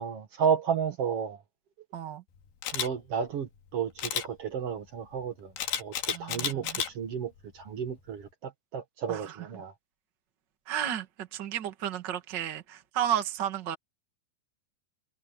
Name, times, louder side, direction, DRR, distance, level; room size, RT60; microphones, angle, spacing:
voice 1, 0.0-1.4 2.7-5.5 5.8-6.7 6.9-9.7, right 7 dB, 60° right, 1.5 m, -32 dB
voice 2, 1.9-2.2 6.1-6.8 9.1-9.5 10.7-13.8, right 10 dB, 85° right, 0.9 m, -33 dB
Camera, 2.6-2.9 4.0-4.3 5.6-6.9 7.4-7.6, left 9 dB, 65° left, 3.7 m, -31 dB
omnidirectional pair, 5.1 m